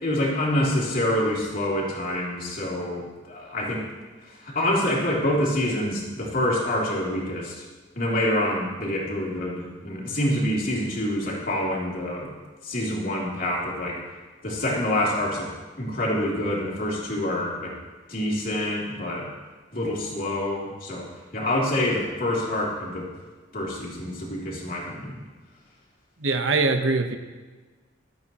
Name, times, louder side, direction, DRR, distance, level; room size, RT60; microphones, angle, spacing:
voice 1, 0.0-3.9 4.2-7.6 7.9-12.3 12.6-14.0 14.4-15.5 15.8-17.8 18.1-19.3 19.7-23.1 23.5-25.2, left 1 dB, 50° left, -4 dB, 3.1 m, -26 dB
voice 2, 26.2-27.2, right 3 dB, 90° right, 6 dB, 1.1 m, -22 dB
24.5 x 8.6 x 3.0 m, 1.4 s
head